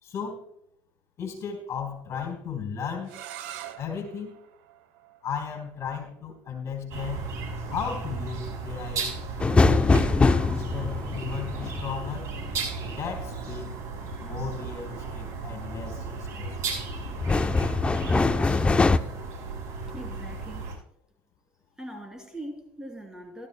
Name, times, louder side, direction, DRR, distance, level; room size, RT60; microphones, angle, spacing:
voice 1, 0.0-0.4 1.2-3.2 3.8-4.4 5.2-7.3 7.7-9.1 9.6-12.3 12.9-13.8 14.2-16.8, left 7 dB, 50° left, 5 dB, 3.9 m, -35 dB
sound 1, 3.0-8.8, right 11 dB, 85° right, 0.9 m, -46 dB
sound 2, 6.9-20.7, right 4 dB, 55° right, 5.8 m, -35 dB
sound 3, 9.4-13.2 15.8-16.2 16.7-19.0, left 3 dB, 15° left, 0.6 m, -23 dB
voice 2, 19.9-20.8 21.8-23.5, right 1 dB, 10° right, 2 dB, 3.0 m, -41 dB
16.0 x 13.0 x 2.2 m, 0.71 s
supercardioid pair, 100°, 6 cm